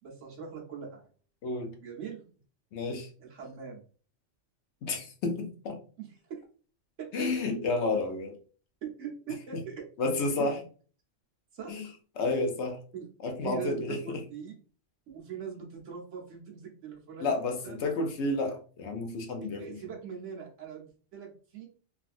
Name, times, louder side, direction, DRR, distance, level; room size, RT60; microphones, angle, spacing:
voice 1, 0.0-1.1 1.8-2.2 3.2-3.8 6.0-6.4 7.0-7.3 8.8-9.8 10.4-10.6 11.5-12.0 12.9-13.1 13.4-14.6 15.1-17.3 17.6-17.7 19.6-20.8 21.1-21.7, right 7 dB, 75° right, -1 dB, 1.2 m, -41 dB
voice 2, 1.4-1.7 2.7-3.1 4.8-5.8 7.1-8.4 9.5-9.6 10.0-10.6 11.7-11.9 12.2-12.8 13.2-14.2 17.2-19.8, left 3 dB, 65° left, 4 dB, 0.9 m, -31 dB
3.3 x 2.5 x 2.5 m, 0.40 s
omnidirectional pair, 1.3 m